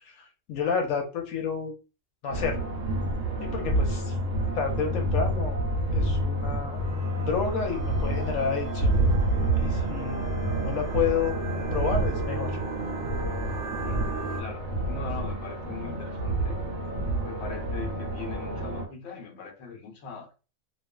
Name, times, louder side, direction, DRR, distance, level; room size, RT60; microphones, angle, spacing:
voice 1, 0.1-1.7 2.2-2.6 3.4-4.2 4.5-5.6 5.9-6.8 7.2-8.9 9.6-10.3 10.6-11.3 11.7-12.6, left 6 dB, 85° left, 1.0 m, -30 dB
sound 1, 2.3-18.9, right 1 dB, 80° right, 1.0 m, -28 dB
sound 2, 6.7-14.4, right 5 dB, 55° right, 0.8 m, -39 dB
voice 2, 13.7-16.6 17.2-20.3, left 5 dB, 60° left, 0.9 m, -41 dB
2.4 x 2.3 x 2.2 m
omnidirectional pair, 1.3 m